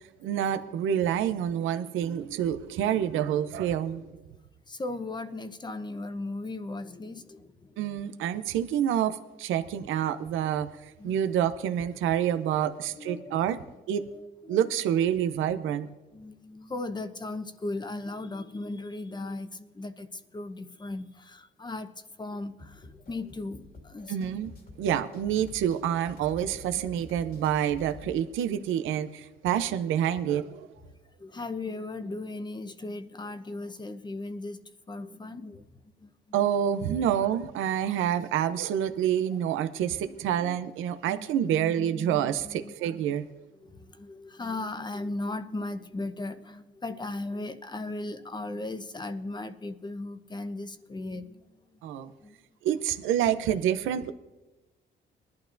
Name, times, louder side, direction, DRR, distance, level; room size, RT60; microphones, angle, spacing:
voice 1, 0.2-4.0 7.8-10.7 11.0-13.6 13.9-14.0 14.5-15.9 24.1-24.5 24.8-30.7 36.3-43.3 51.8-52.1 52.6-54.1, right 10 dB, 90° right, 10 dB, 0.6 m, -27 dB
voice 2, 4.7-7.8 11.0-11.2 12.7-13.4 14.0-14.7 15.1-15.2 15.7-15.8 16.1-24.4 26.4-26.5 26.9-27.1 29.0-29.1 31.2-36.1 37.0-37.3 40.0-40.6 41.0-43.2 43.6-52.4, left 2 dB, 20° left, 9 dB, 0.9 m, -38 dB
sound 1, 22.6-28.2, left 3 dB, 50° left, 2.2 m, -48 dB
20.5 x 11.5 x 2.6 m, 1.1 s
cardioid pair, 90°, 20 cm